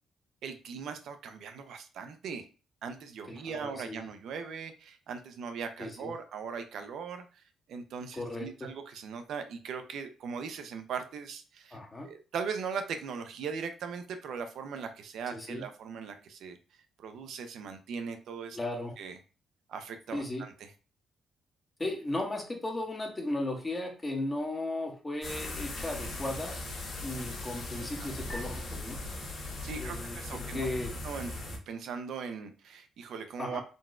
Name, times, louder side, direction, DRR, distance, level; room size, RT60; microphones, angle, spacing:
voice 1, 0.4-2.4 2.8-7.4 7.7-11.8 12.0-16.6 17.0-18.6 19.0-19.2 19.7-20.5 28.0-28.1 29.6-30.7 31.0-31.3 31.7-33.6, right 6 dB, 75° right, 7 dB, 0.5 m, -39 dB
voice 2, 3.3-4.1 5.8-6.1 8.1-8.7 11.7-12.1 15.3-15.6 18.5-18.9 20.1-20.5 21.8-26.6 27.0-29.0 29.7-30.9 33.4-33.6, left 2 dB, 20° left, 1 dB, 0.7 m, -36 dB
sound 1, 25.2-31.6, left 2 dB, 50° left, 1.1 m, -39 dB
3.8 x 2.2 x 2.4 m, 0.35 s
cardioid pair, 90°, 0 cm